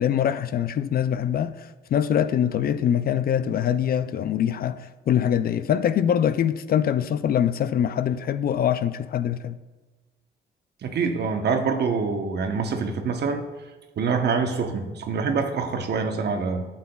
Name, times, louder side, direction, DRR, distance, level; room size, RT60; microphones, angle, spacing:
voice 1, 0.0-9.6, left 9 dB, 50° left, 0.4 m, -23 dB
voice 2, 10.8-13.4 14.0-16.7, right 5 dB, 55° right, 0.9 m, -25 dB
11.5 x 7.2 x 2.3 m
cardioid pair, 90°, 20 cm